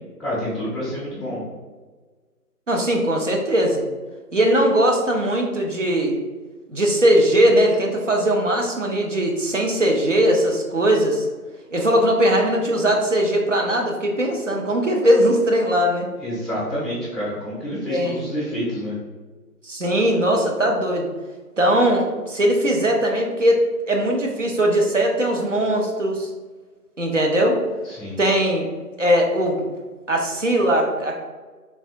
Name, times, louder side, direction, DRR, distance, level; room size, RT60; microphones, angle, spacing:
voice 1, 0.2-1.4 16.2-19.0 27.8-28.2, equal, ahead, -11 dB, 0.5 m, -28 dB
voice 2, 2.7-3.8 4.3-6.2 6.7-11.3 11.7-16.1 17.9-18.2 19.6-21.1 21.6-23.6 23.9-26.3 27.0-27.6 28.2-28.7 29.0-29.6 30.1-31.2, right 1 dB, 50° right, 1 dB, 0.5 m, -20 dB
3.3 x 2.6 x 2.5 m, 1.4 s
figure-of-eight pair, 170°, 48 cm